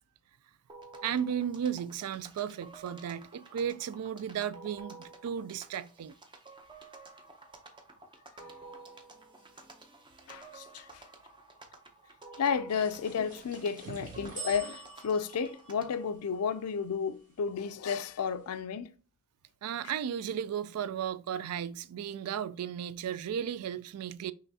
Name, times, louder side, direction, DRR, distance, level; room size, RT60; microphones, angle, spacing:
sound 1, 0.7-16.1, right 3 dB, 20° right, 0.6 m, -52 dB
voice 1, 1.0-6.1 13.9-14.1 19.6-24.3, right 8 dB, 75° right, 0.3 m, -35 dB
voice 2, 10.3-11.0 12.4-18.9, left 6 dB, 75° left, 0.4 m, -32 dB
sound 2, 12.7-17.2, right 5 dB, 40° right, 1.5 m, -48 dB
5.7 x 3.1 x 2.7 m
head